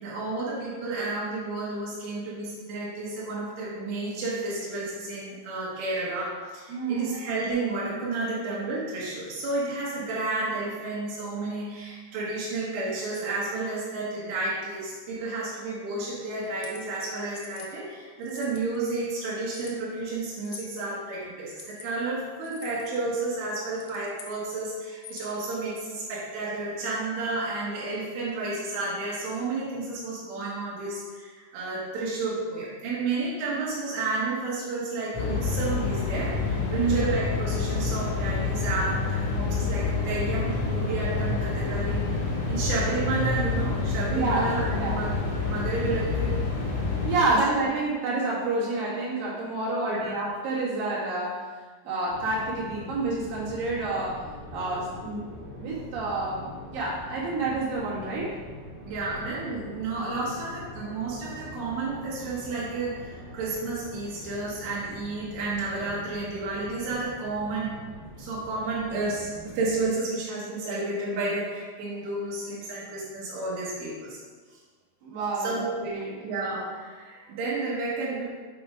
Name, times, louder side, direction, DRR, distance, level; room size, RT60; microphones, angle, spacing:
voice 1, 0.0-42.1 42.5-45.1 45.5-46.4 47.3-47.4 49.8-50.1 58.9-67.8 68.2-74.2 74.5-74.6 75.4-75.7 76.2-78.2, right 3 dB, 80° right, -7 dB, 3.4 m, -31 dB
voice 2, 6.7-7.1 36.7-37.1 44.1-45.0 47.0-51.4 51.8-54.2 54.5-55.2 55.6-58.3 75.0-76.2, right 3 dB, 60° right, -7 dB, 3.4 m, -28 dB
sound 1, 16.4-16.8 17.4-17.7 18.2-18.8 19.5-19.8 20.4-20.7 21.5-21.9 22.4-22.9 23.7-24.4 24.9-25.4, left 7 dB, 75° left, 2.3 m, -45 dB
sound 2, 35.1-47.2, left 4 dB, 50° left, 1.9 m, -28 dB
sound 3, 52.1-69.9, equal, 35° right, 1.0 m, -44 dB
7.5 x 4.2 x 5.0 m, 1.5 s
omnidirectional pair, 4.8 m